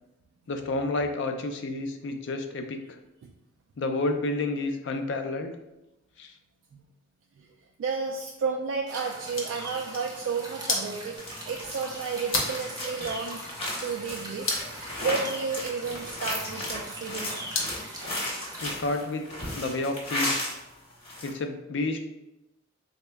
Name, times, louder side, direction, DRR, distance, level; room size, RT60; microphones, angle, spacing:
voice 1, 0.5-2.8 3.8-5.5 6.2-6.3 18.6-19.2 19.5-20.5 21.2-22.0, left 2 dB, 60° left, 6 dB, 0.4 m, -30 dB
voice 2, 7.8-11.2 11.5-13.4 13.8-17.5, right 5 dB, 70° right, 0 dB, 0.3 m, -32 dB
sound 1, 8.9-18.8, right 1 dB, 20° right, 0.6 m, -42 dB
sound 2, 9.1-17.9, left 3 dB, 80° left, 0.8 m, -36 dB
sound 3, 11.2-20.6 20.9-21.3, left 1 dB, 30° left, 0.8 m, -35 dB
3.7 x 2.1 x 3.3 m, 0.94 s
head